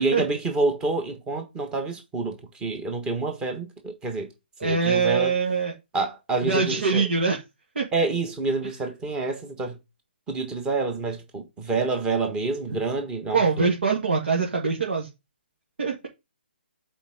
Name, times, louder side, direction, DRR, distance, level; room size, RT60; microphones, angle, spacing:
voice 1, 0.0-2.3 2.6-4.3 4.6-5.3 5.9-7.0 7.9-9.8 10.3-13.7, right 3 dB, 10° right, 1.4 m, -27 dB
voice 2, 4.6-5.7 6.4-7.4 7.8-7.9 8.6-8.7 12.7-12.8 13.3-15.1 15.8-16.1, right 5 dB, 70° right, 2.1 m, -23 dB
7.1 x 4.6 x 3.7 m
hypercardioid pair, 150°, 6 cm